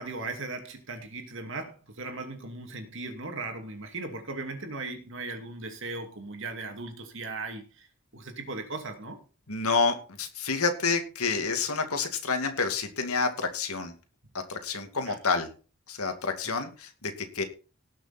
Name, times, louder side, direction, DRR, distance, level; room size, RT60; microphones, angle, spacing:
voice 1, 0.0-7.9 8.1-9.2 15.0-15.2 16.5-16.6, right 3 dB, 55° right, 5 dB, 2.5 m, -38 dB
voice 2, 9.5-13.9 14.3-15.5 15.9-17.4, left 4 dB, 80° left, 6 dB, 2.4 m, -29 dB
18.5 x 6.7 x 4.4 m, 0.36 s
head